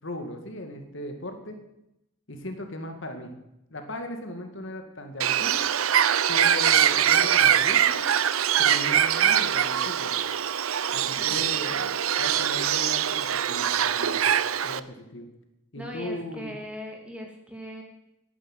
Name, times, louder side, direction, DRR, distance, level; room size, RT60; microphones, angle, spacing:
voice 1, 0.0-1.6 2.3-3.3 3.7-5.6 6.3-8.1 8.6-10.1 10.9-14.3 14.6-15.3 15.7-16.5, left 1 dB, 60° left, 5 dB, 2.2 m, -37 dB
Bird, 5.2-14.8, right 9 dB, 85° right, 0.7 m, -23 dB
voice 2, 15.7-17.8, equal, 5° right, 1 dB, 2.7 m, -39 dB
11.0 x 11.0 x 9.8 m, 0.87 s
head